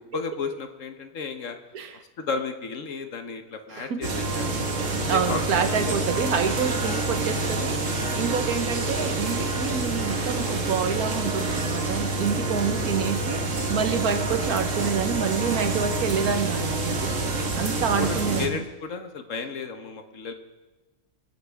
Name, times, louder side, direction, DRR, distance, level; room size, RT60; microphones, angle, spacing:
voice 1, 0.1-1.6 2.2-4.6 5.0-6.1 6.8-7.0 17.4-20.3, left 5 dB, 55° left, 7 dB, 1.3 m, -34 dB
voice 2, 3.7-4.1 5.1-13.4 13.7-18.6, right 6 dB, 70° right, 8 dB, 1.5 m, -28 dB
sound 1, 4.0-18.5, right 2 dB, 55° right, 1.8 m, -27 dB
26.5 x 9.4 x 3.5 m, 1.2 s
omnidirectional pair, 1.7 m